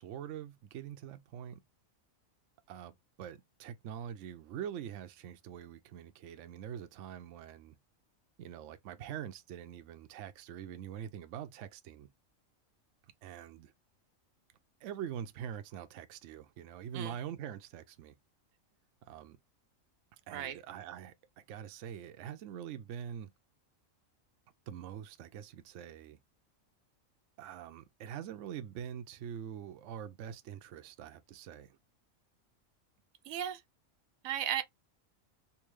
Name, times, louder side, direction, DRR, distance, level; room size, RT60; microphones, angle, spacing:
voice 1, 0.0-1.6 2.7-7.8 8.4-12.1 13.2-13.7 14.8-18.2 19.0-19.4 20.3-23.3 24.7-26.2 27.4-31.8, right 9 dB, 70° right, 0.9 m, -44 dB
voice 2, 33.3-33.6 34.2-34.6, right 10 dB, 90° right, 1.0 m, -35 dB
3.5 x 2.7 x 3.0 m
omnidirectional pair, 1.4 m